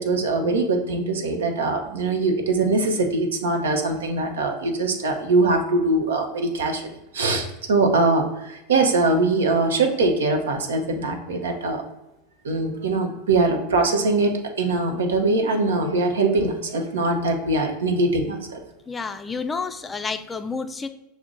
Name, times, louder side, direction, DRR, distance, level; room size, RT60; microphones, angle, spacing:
voice 1, 0.0-6.8 7.1-11.8 12.4-18.6, right 3 dB, 90° right, 3 dB, 0.7 m, -22 dB
voice 2, 18.9-20.9, left 4 dB, 20° left, 9 dB, 0.4 m, -30 dB
5.8 x 2.1 x 3.7 m, 0.95 s
hypercardioid pair, 105°, 0 cm